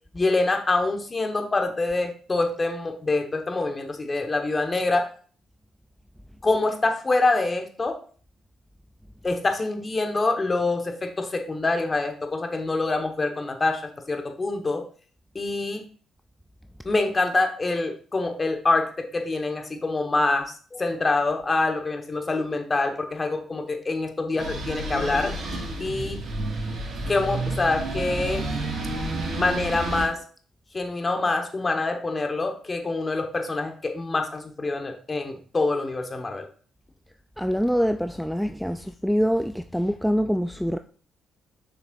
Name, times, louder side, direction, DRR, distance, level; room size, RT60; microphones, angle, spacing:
voice 1, 0.1-5.1 6.4-8.0 9.2-14.8 15.3-15.8 16.8-25.4 25.8-26.2 27.1-28.4 29.3-30.2 30.7-36.5, left 3 dB, 30° left, 1.4 m, -25 dB
sound 1, 24.4-30.0, right 2 dB, 65° right, 2.8 m, -30 dB
voice 2, 37.4-40.8, equal, ahead, 0.4 m, -25 dB
6.7 x 5.9 x 2.6 m
supercardioid pair, 55°, 0 cm